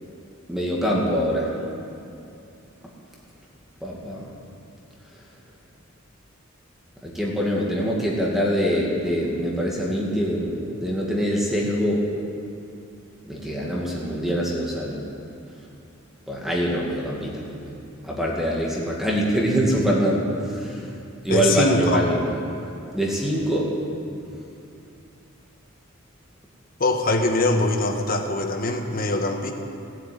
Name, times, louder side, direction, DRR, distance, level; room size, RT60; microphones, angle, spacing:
voice 1, 0.5-1.5 3.8-4.3 7.0-12.0 13.3-15.0 16.3-17.8 18.0-21.0 21.2-22.4 22.9-23.7, equal, ahead, -4 dB, 2.1 m, -24 dB
voice 2, 21.3-22.0 26.8-29.5, left 2 dB, 45° left, 4 dB, 1.4 m, -22 dB
17.0 x 8.0 x 9.3 m, 2.6 s
head